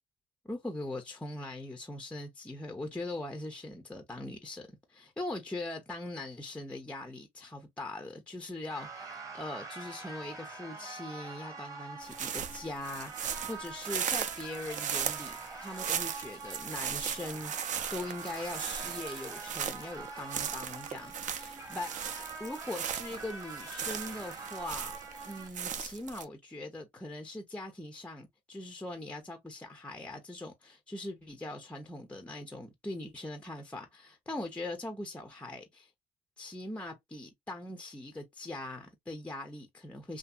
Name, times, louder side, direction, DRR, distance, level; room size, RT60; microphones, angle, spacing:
voice 1, 0.4-21.9 22.4-24.9 25.2-35.9 36.4-40.2, left 2 dB, 5° left, 0.5 m, -41 dB
sound 1, 8.7-25.5, right 3 dB, 20° right, 1.0 m, -45 dB
sound 2, 12.0-26.2, right 8 dB, 45° right, 0.4 m, -37 dB
2.6 x 2.6 x 2.2 m
cardioid pair, 110°, 17 cm